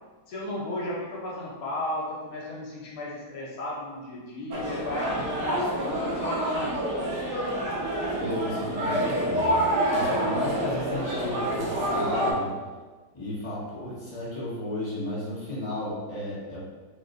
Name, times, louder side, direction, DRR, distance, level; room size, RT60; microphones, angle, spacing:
voice 1, 0.3-6.9, left 1 dB, 75° left, -3 dB, 1.2 m, -34 dB
sound 1, 4.5-12.3, right 1 dB, 80° right, 1.5 m, -27 dB
voice 2, 8.2-12.5 13.1-16.6, left 1 dB, 20° left, -8 dB, 1.2 m, -33 dB
3.8 x 2.4 x 3.8 m, 1.3 s
omnidirectional pair, 1.7 m